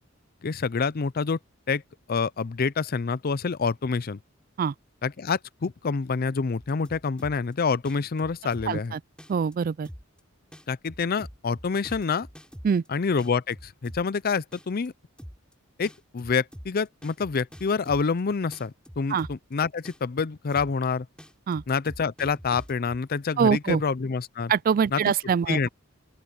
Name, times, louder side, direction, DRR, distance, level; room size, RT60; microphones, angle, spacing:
voice 1, 0.4-1.4 1.7-1.8 2.1-4.2 5.0-8.9 10.7-12.3 12.9-14.9 15.8-21.1 21.7-24.5 24.9-25.0 25.5-25.7, left 5 dB, 45° left, 0.5 m, -27 dB
sound 1, 6.6-7.5 7.8-8.9 9.2-9.5 9.8-10.2 10.5-12.9 13.2-14.2 14.5-14.9 15.2-15.5 15.8-18.2 18.5-19.5 19.8-20.2 20.5-20.9 21.2-23.0, equal, 5° left, 6.3 m, -44 dB
voice 2, 8.7-9.0 9.3-9.9 12.6-12.8 19.1-19.3 21.5-21.6 23.4-23.8 24.5-25.7, right 6 dB, 45° right, 0.3 m, -24 dB
open air
head